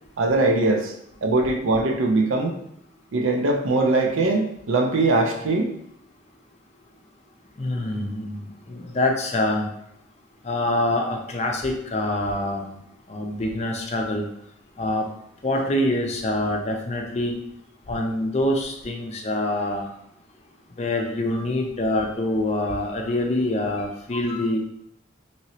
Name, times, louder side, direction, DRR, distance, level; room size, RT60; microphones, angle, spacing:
voice 1, 0.2-0.9 1.2-2.5 3.1-5.7, right 2 dB, 90° right, 2 dB, 0.6 m, -21 dB
voice 2, 7.6-9.7 10.4-12.7 13.1-14.3 14.8-15.1 15.4-17.4 17.9-19.9 20.8-24.6, left 1 dB, 35° left, 2 dB, 0.4 m, -25 dB
3.0 x 2.9 x 2.8 m, 0.74 s
head